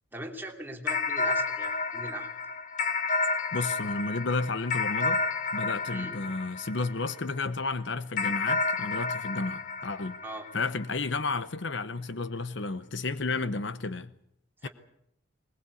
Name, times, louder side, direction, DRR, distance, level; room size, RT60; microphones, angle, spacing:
voice 1, 0.1-2.3 5.9-6.4 10.2-10.5 14.6-14.7, right 1 dB, 10° right, 3.0 m, -40 dB
sound 1, 0.9-7.5 8.2-10.9, left 3 dB, 40° left, 1.5 m, -31 dB
voice 2, 3.5-5.2 5.5-10.2 10.5-14.1 14.6-14.7, left 3 dB, 60° left, 0.9 m, -32 dB
21.5 x 20.5 x 8.4 m
head